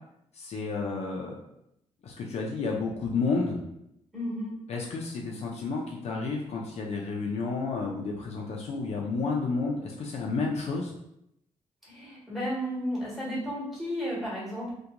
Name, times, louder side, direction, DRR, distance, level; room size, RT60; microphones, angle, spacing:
voice 1, 0.3-1.4 2.0-3.6 4.7-10.9, left 4 dB, 60° left, -1 dB, 0.4 m, -31 dB
voice 2, 4.1-4.5 11.8-14.7, equal, ahead, -7 dB, 1.4 m, -33 dB
2.8 x 2.2 x 2.4 m, 0.78 s
cardioid pair, 110°, 12 cm